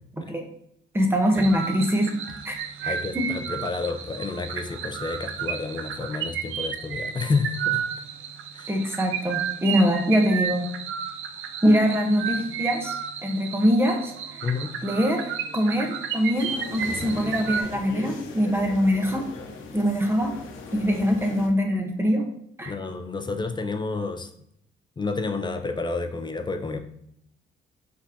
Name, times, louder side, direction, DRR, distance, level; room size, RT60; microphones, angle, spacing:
voice 1, 0.2-0.5 0.9-2.2 2.4-3.3 8.7-10.7 11.6-13.0 13.2-14.5 14.8-19.3 19.7-20.3 20.7-22.2 22.6-22.7, equal, 10° right, 3 dB, 0.8 m, -23 dB
sound 1, 1.3-17.6, right 8 dB, 90° right, 0.5 m, -32 dB
voice 2, 2.8-7.8 8.5-8.7 14.4-14.8 22.7-24.3 25.0-26.8, left 4 dB, 20° left, 7 dB, 0.5 m, -30 dB
sound 2, 16.3-21.5, left 3 dB, 80° left, 0.8 m, -38 dB
4.9 x 3.5 x 2.7 m, 0.72 s
cardioid pair, 90°, 20 cm